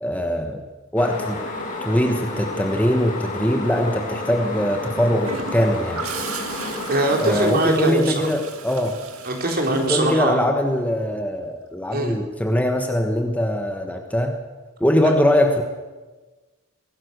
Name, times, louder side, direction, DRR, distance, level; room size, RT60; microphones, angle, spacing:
voice 1, 0.0-0.6 0.9-1.4 1.8-6.0 7.2-9.0 9.7-14.4 14.8-15.6, left 1 dB, 5° left, 4 dB, 1.4 m, -22 dB
sound 1, 1.0-7.4, left 2 dB, 40° left, 5.0 m, -31 dB
Gurgling / Toilet flush, 5.2-11.0 13.0-13.2, right 5 dB, 85° right, 2.1 m, -36 dB
voice 2, 6.9-8.3 9.2-10.5 11.9-12.1, right 2 dB, 45° right, 2 dB, 3.9 m, -22 dB
23.5 x 17.0 x 6.7 m, 1.3 s
head